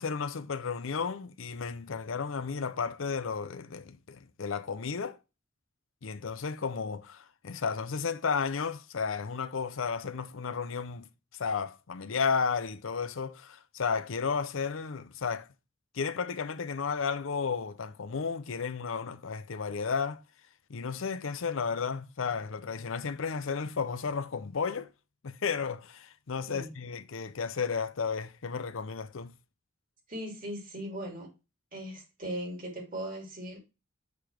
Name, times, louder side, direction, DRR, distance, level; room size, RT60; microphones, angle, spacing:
voice 1, 0.0-5.2 6.0-11.1 11.3-15.5 15.9-20.2 20.7-24.9 25.2-29.3, left 5 dB, 80° left, 0.6 m, -33 dB
voice 2, 30.1-31.3 31.7-33.6, equal, 45° right, 2.9 m, -38 dB
6.7 x 3.5 x 5.9 m
head